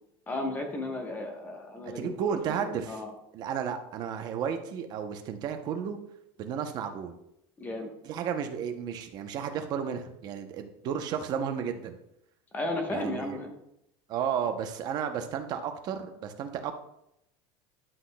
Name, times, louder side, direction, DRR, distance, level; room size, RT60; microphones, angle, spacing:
voice 1, 0.3-3.1 7.6-7.9 12.5-13.5, left 2 dB, 15° left, 3 dB, 1.0 m, -34 dB
voice 2, 1.8-3.0 3.3-6.0 6.4-7.2 8.1-12.0 12.9-13.4 14.1-16.7, right 8 dB, 30° right, 6 dB, 0.7 m, -33 dB
11.0 x 5.8 x 2.2 m, 0.80 s
cardioid pair, 175°, 13 cm